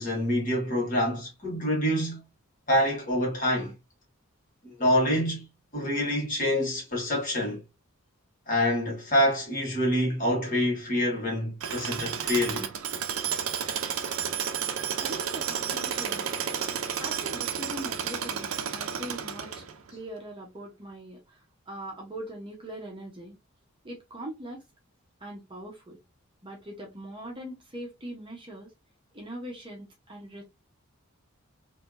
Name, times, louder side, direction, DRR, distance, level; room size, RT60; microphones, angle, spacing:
voice 1, 0.0-2.2 2.7-3.7 4.6-5.4 5.7-7.6 8.5-12.7 16.7-16.8, left 1 dB, 40° left, 1.6 m, -26 dB
Tools, 11.6-19.9, right 7 dB, 75° right, 0.5 m, -32 dB
voice 2, 15.0-16.4 17.0-23.3 23.8-24.6 25.2-26.0 26.4-28.7 29.1-30.4, right 1 dB, 25° right, 0.8 m, -41 dB
3.3 x 2.6 x 2.4 m
head